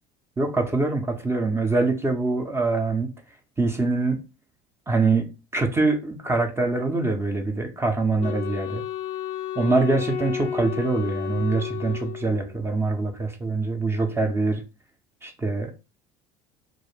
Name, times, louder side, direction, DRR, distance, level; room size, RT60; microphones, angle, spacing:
voice 1, 0.4-3.1 3.6-4.2 4.9-8.8 9.6-14.6 15.2-15.8, right 3 dB, 15° right, 0.5 m, -24 dB
Wind instrument woodwind instrument, 8.2-12.6, left 9 dB, 55° left, 0.4 m, -32 dB
2.4 x 2.0 x 3.0 m
hypercardioid pair, 75°, 15 cm